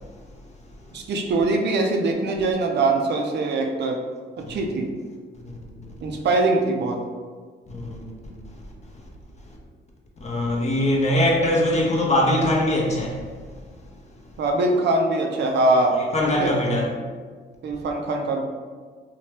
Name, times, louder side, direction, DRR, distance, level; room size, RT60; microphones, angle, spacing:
voice 1, 0.9-4.0 4.4-4.9 6.0-7.0 14.4-16.0 16.4-16.5 17.6-18.4, right 2 dB, 60° right, 0.5 m, -22 dB
voice 2, 7.7-8.3 10.2-13.2 15.9-16.9, left 1 dB, 35° left, 0.6 m, -22 dB
2.7 x 2.2 x 3.2 m
cardioid pair, 90°, 20 cm